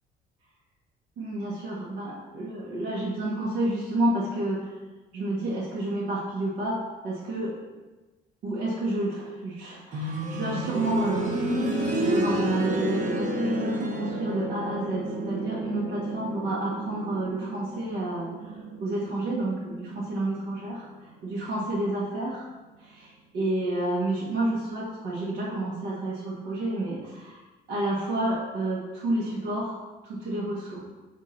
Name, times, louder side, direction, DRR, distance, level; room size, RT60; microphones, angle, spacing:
voice 1, 1.2-4.7 5.1-7.6 8.4-11.3 12.0-22.5 22.8-27.4 27.7-30.8, right 1 dB, 80° right, -6 dB, 1.5 m, -30 dB
sound 1, 9.9-20.7 21.0-21.1 22.0-22.1, right 1 dB, 50° right, 1.2 m, -31 dB
8.2 x 2.8 x 5.7 m, 1.2 s
cardioid pair, 110°, 17 cm